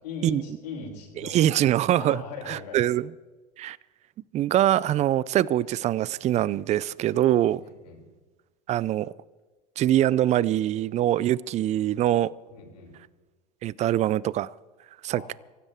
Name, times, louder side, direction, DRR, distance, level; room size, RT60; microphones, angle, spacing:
voice 1, 0.0-1.4 2.0-2.8 7.6-8.0 12.5-12.9 15.1-15.3, left 4 dB, 75° left, -1 dB, 6.4 m, -39 dB
voice 2, 1.2-3.1 3.6-3.8 4.3-7.6 8.7-9.1 9.8-12.3 13.6-14.5 15.0-15.2, right 12 dB, 35° right, 22 dB, 0.5 m, -23 dB
25.0 x 16.0 x 3.6 m, 1.2 s
hypercardioid pair, 90°, 21 cm